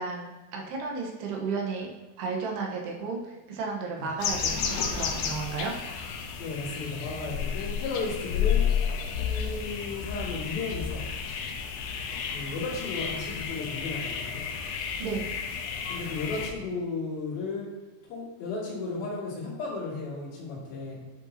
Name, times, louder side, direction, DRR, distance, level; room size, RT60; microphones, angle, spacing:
voice 1, 0.0-1.9 2.2-5.7 15.0-15.3, right 4 dB, 75° right, 0 dB, 3.2 m, -33 dB
sound 1, 4.2-16.5, left 7 dB, 80° left, 2.9 m, -31 dB
voice 2, 6.4-8.7 9.2-11.1 12.3-14.4 15.9-17.7 18.1-21.0, left 3 dB, 65° left, -6 dB, 4.3 m, -34 dB
11.0 x 6.8 x 2.9 m, 1.2 s
omnidirectional pair, 4.8 m